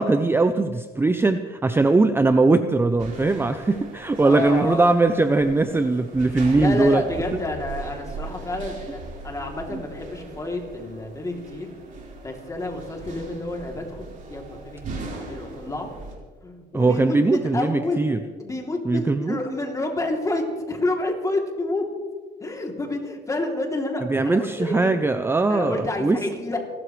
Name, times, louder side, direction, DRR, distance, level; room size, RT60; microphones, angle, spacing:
voice 1, 0.0-7.0 9.7-9.8 16.7-18.2 18.9-19.4 24.1-26.2, right 3 dB, 15° right, 10 dB, 0.6 m, -20 dB
sound 1, 3.0-16.1, right 3 dB, 50° right, 4.6 m, -39 dB
voice 2, 4.2-4.9 6.6-11.7 12.2-15.9 16.4-18.0 18.4-21.8 22.4-24.9 25.5-26.6, left 2 dB, 20° left, 1 dB, 3.0 m, -29 dB
28.0 x 13.0 x 3.3 m, 1.5 s
cardioid pair, 110°, 17 cm